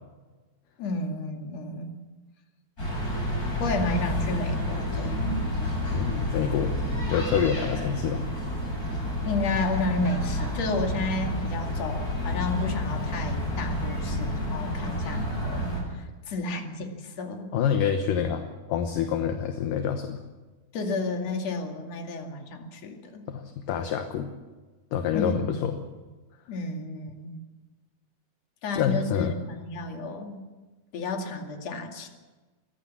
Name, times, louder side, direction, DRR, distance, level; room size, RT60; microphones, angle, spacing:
voice 1, 0.8-1.9 3.6-5.4 9.3-17.5 20.7-23.3 25.1-25.6 26.5-27.4 28.6-30.4 30.9-32.1, left 2 dB, 45° left, 3 dB, 3.2 m, -32 dB
sound 1, 2.8-15.8, left 1 dB, 20° left, 8.5 m, -29 dB
voice 2, 5.9-6.7 7.1-8.2 17.5-18.4 18.7-20.2 23.3-24.3 24.9-25.8 28.7-29.4, left 8 dB, 70° left, 6 dB, 2.5 m, -27 dB
23.0 x 16.5 x 7.3 m, 1.3 s
omnidirectional pair, 4.4 m